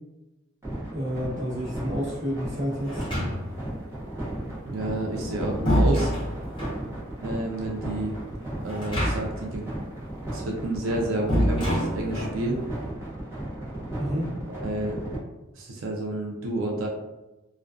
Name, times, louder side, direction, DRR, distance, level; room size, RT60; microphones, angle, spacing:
sound 1, 0.6-15.2, right 1 dB, 15° right, 0.6 m, -35 dB
voice 1, 0.9-3.0 14.0-14.3, equal, 35° right, -7 dB, 0.9 m, -29 dB
sound 2, 2.9-3.7 5.0-6.8 8.7-9.5 9.8-9.9 11.3-12.4, equal, 25° left, 0.8 m, -26 dB
voice 2, 4.7-6.1 7.2-8.2 8.6-9.7 10.3-12.6 14.5-15.0 15.5-16.9, right 2 dB, 80° right, 0 dB, 0.4 m, -30 dB
2.4 x 2.2 x 2.3 m, 1.0 s
head